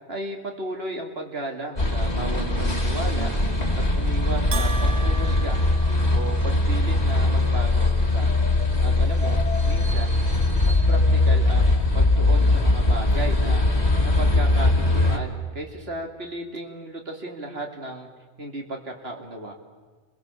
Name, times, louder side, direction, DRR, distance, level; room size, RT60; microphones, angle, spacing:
voice 1, 0.1-3.3 3.7-5.6 6.1-8.3 8.8-10.2 10.6-13.7 14.2-18.1 18.4-19.5, right 1 dB, 65° right, 3 dB, 2.8 m, -34 dB
sound 1, 1.8-15.2, left 2 dB, 40° left, 2.5 m, -21 dB
Bell, 4.5-6.7, right 3 dB, 90° right, 1.5 m, -35 dB
29.5 x 22.0 x 7.2 m, 1.4 s
omnidirectional pair, 1.1 m